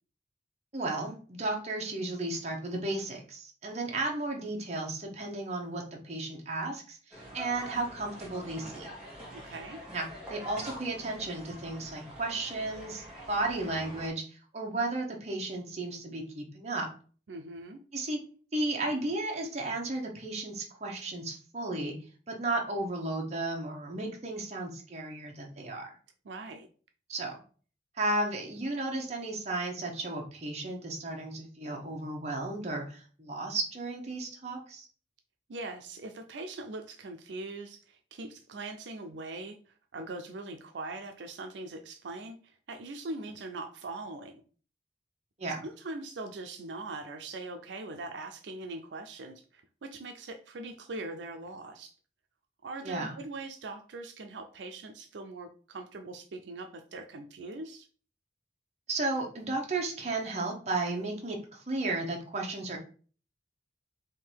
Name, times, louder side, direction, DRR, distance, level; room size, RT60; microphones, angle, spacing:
voice 1, 0.7-8.9 9.9-16.9 17.9-18.2 18.5-21.9 22.3-25.9 27.1-27.4 28.0-34.9 45.4-45.6 52.8-53.2 58.9-62.8, right 2 dB, 40° right, 0 dB, 1.0 m, -34 dB
sound 1, 7.1-14.1, equal, 5° right, 1.4 m, -45 dB
voice 2, 9.3-9.8 17.3-17.8 26.2-26.7 35.5-44.4 45.6-51.9 52.6-57.9, right 2 dB, 85° right, 6 dB, 0.5 m, -41 dB
3.7 x 2.7 x 4.5 m, 0.41 s
head